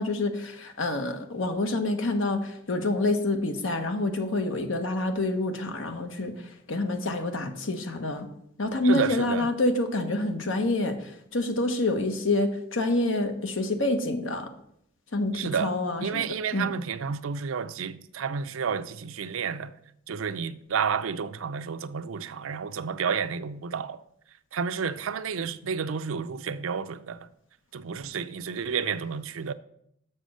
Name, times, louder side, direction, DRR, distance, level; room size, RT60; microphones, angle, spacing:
voice 1, 0.0-8.3 8.6-14.5 15.1-16.3 16.5-16.7, left 2 dB, 75° left, 1.2 m, -27 dB
voice 2, 8.8-9.5 15.3-15.7 16.0-19.7 20.1-24.0 24.5-27.3 27.7-29.5, right 6 dB, 90° right, 0.5 m, -31 dB
6.8 x 6.2 x 6.3 m
head